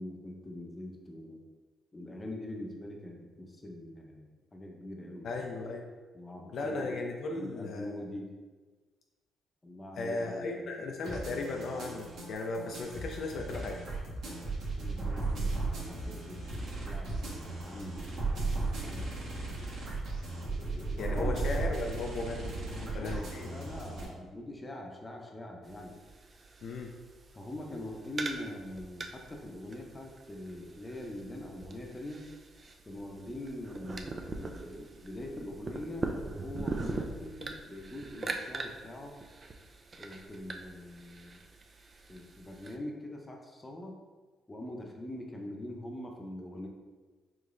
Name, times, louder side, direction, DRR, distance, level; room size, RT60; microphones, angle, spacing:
voice 1, 0.0-1.4 1.9-5.5 6.1-7.0 7.3-8.4 9.6-10.9 14.3-14.4 14.8-19.1 20.3-21.5 22.7-26.0 27.3-32.3 32.9-39.2 40.0-41.4 42.1-44.0 44.5-46.7, left 1 dB, 20° left, 1 dB, 0.7 m, -43 dB
voice 2, 5.2-5.9 6.5-8.0 10.0-13.8 21.0-22.5 22.9-23.5 26.6-26.9, left 3 dB, 65° left, 1 dB, 0.4 m, -36 dB
sound 1, 11.0-24.1, right 3 dB, 75° right, 1.3 m, -36 dB
sound 2, 25.6-42.8, right 3 dB, 35° right, 0.4 m, -42 dB
4.9 x 3.2 x 2.5 m, 1.3 s
cardioid pair, 90°, 0 cm